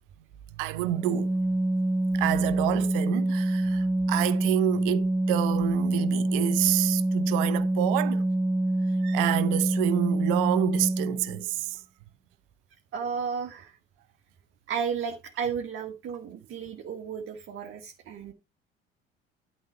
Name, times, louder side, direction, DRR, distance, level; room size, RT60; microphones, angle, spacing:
voice 1, 0.6-1.3 2.1-8.3 9.0-11.8, right 15 dB, 60° right, 0.9 m, -28 dB
Organ, 0.9-11.5, right 1 dB, 5° right, 1.1 m, -26 dB
voice 2, 12.9-13.7 14.7-18.3, right 6 dB, 45° right, 1.8 m, -33 dB
12.0 x 4.2 x 5.5 m
figure-of-eight pair, 55°, 30 cm